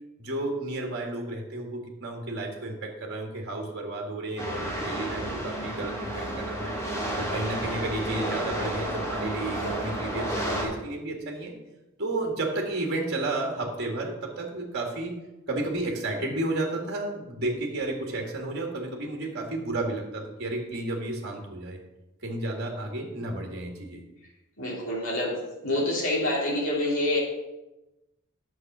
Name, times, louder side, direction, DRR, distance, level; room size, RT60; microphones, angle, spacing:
voice 1, 0.2-6.8 7.2-11.5 12.0-15.2 15.5-21.8 22.2-24.0, right 2 dB, 50° right, 1 dB, 1.9 m, -32 dB
sound 1, 4.4-10.6, right 1 dB, 15° left, 2.6 m, -31 dB
voice 2, 24.6-25.4 25.6-27.2, left 1 dB, 60° left, -4 dB, 3.3 m, -26 dB
9.9 x 7.2 x 6.1 m, 1.0 s
head